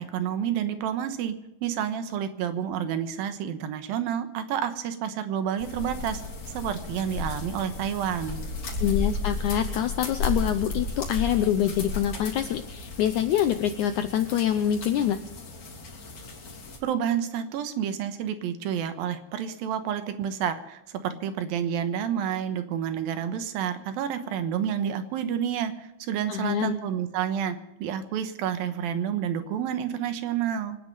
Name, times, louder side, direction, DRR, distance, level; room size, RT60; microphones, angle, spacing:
voice 1, 0.0-6.2 6.5-8.4 16.8-30.8, right 9 dB, 75° right, 9 dB, 2.8 m, -29 dB
sound 1, 5.6-16.8, left 3 dB, 50° left, 4.0 m, -34 dB
voice 2, 8.8-15.2 26.3-26.8, left 10 dB, 85° left, 9 dB, 1.7 m, -25 dB
25.5 x 9.6 x 5.4 m, 0.95 s
omnidirectional pair, 4.3 m